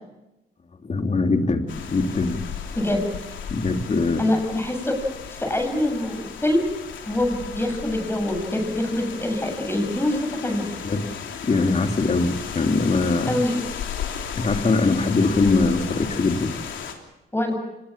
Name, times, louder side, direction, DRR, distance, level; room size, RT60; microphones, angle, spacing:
voice 1, 0.8-2.5 3.5-4.2 10.8-11.0 11.4-13.4 14.4-16.5, left 3 dB, 35° left, 5 dB, 3.1 m, -22 dB
sound 1, 1.7-16.9, left 7 dB, 70° left, 3.4 m, -35 dB
voice 2, 4.2-6.6 7.1-10.7 13.3-13.6 17.3-17.6, left 1 dB, 10° left, 5 dB, 7.7 m, -24 dB
25.5 x 20.0 x 7.4 m, 0.94 s
cardioid pair, 90°, 20 cm